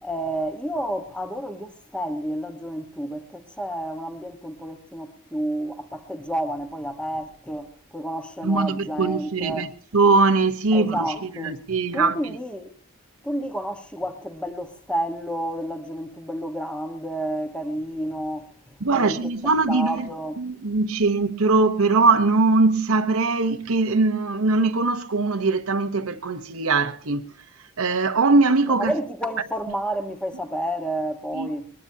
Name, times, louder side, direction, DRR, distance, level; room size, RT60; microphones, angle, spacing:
voice 1, 0.0-9.7 10.7-11.6 11.9-12.7 13.2-20.5 28.8-31.7, right 1 dB, 5° left, 1.3 m, -30 dB
voice 2, 8.4-9.7 9.9-12.2 18.8-20.1 20.4-27.3 27.8-28.9 31.3-31.5, right 3 dB, 70° right, 1.0 m, -21 dB
22.0 x 20.5 x 2.8 m
head